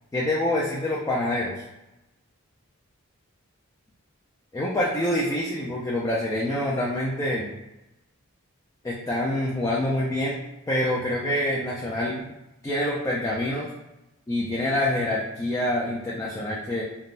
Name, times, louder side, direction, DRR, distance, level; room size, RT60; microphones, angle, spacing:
voice 1, 0.1-1.6 4.5-7.5 8.8-12.3 12.6-13.7 14.3-16.8, left 1 dB, 15° left, -5 dB, 0.3 m, -26 dB
3.3 x 2.0 x 2.4 m, 0.97 s
head